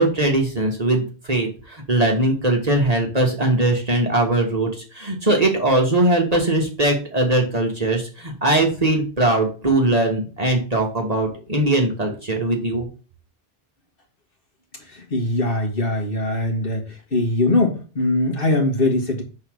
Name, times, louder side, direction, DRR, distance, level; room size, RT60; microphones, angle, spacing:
voice 1, 0.0-4.7 4.9-12.9, right 2 dB, 35° right, 1 dB, 1.4 m, -20 dB
voice 2, 15.1-16.8 17.1-19.2, left 2 dB, 50° left, 2 dB, 1.8 m, -21 dB
6.7 x 3.9 x 6.1 m, 0.36 s
omnidirectional pair, 1.2 m